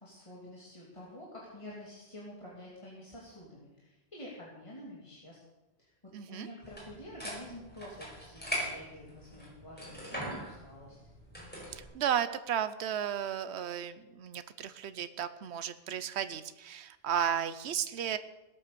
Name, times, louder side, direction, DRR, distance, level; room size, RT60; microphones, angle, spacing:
voice 1, 0.0-5.4 5.8-5.9 6.3-11.0, left 1 dB, 30° left, -5 dB, 2.9 m, -48 dB
voice 2, 6.1-6.5 11.7-18.2, right 9 dB, 80° right, 12 dB, 1.0 m, -34 dB
sound 1, 6.6-11.8, equal, 10° left, 5.1 m, -41 dB
18.0 x 8.4 x 6.8 m, 1.1 s
omnidirectional pair, 1.1 m